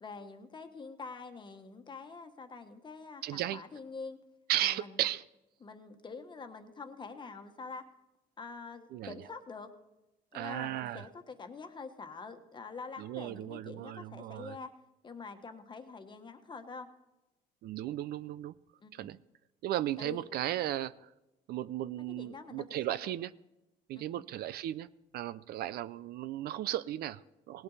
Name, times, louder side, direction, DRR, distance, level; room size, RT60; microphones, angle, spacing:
voice 1, 0.0-4.2 4.6-5.0 5.6-7.8 8.4-9.7 10.3-14.7 15.0-16.9 18.8-19.1 20.0-20.2 22.1-23.1 24.0-24.2, left 4 dB, 25° left, 7 dB, 1.3 m, -46 dB
voice 2, 3.2-3.6 4.5-5.2 8.9-9.2 10.3-11.1 13.0-14.6 17.6-18.5 18.9-19.2 19.6-21.1 21.5-23.3 23.9-24.9 25.1-27.6, right 13 dB, 70° right, 16 dB, 0.4 m, -35 dB
18.0 x 8.7 x 4.1 m, 0.94 s
cardioid pair, 110°, 17 cm